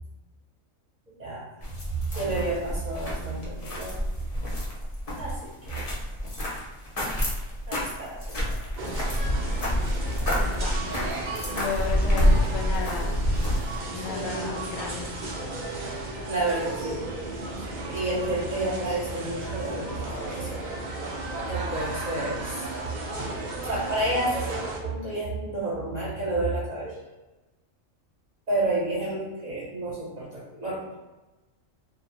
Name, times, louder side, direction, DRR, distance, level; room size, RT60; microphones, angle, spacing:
sound 1, 1.6-13.8, equal, 50° left, 0.4 m, -28 dB
voice 1, 1.9-3.9 5.2-5.8 7.7-8.6 14.1-14.6 16.3-17.1 17.9-20.6 21.4-22.7 23.2-23.3 23.6-27.0 28.5-30.8, right 2 dB, 40° right, -8 dB, 0.7 m, -30 dB
sound 2, 8.8-24.8, right 2 dB, 85° right, 0.4 m, -34 dB
voice 2, 10.4-11.0 11.5-13.2 13.9-15.2, left 5 dB, 75° left, -1 dB, 0.9 m, -34 dB
2.6 x 2.1 x 2.8 m, 1.1 s
omnidirectional pair, 1.4 m